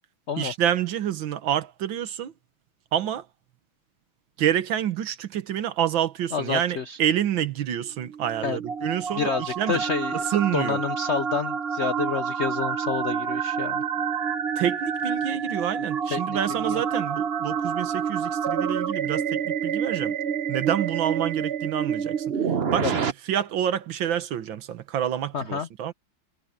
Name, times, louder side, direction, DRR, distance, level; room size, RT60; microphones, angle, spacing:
voice 1, 0.4-2.3 2.9-3.3 4.4-9.8 10.1-10.8 14.6-20.2 20.5-22.4 22.7-25.9, right 10 dB, 70° right, 1.8 m, -28 dB
voice 2, 6.3-7.0 8.4-8.6 9.2-10.2 10.5-13.8 16.1-16.4 16.7-16.8 22.8-22.9 25.3-25.7, left 6 dB, 85° left, 0.6 m, -29 dB
sound 1, 8.0-23.1, right 7 dB, 50° right, 0.8 m, -28 dB
omnidirectional pair, 2.3 m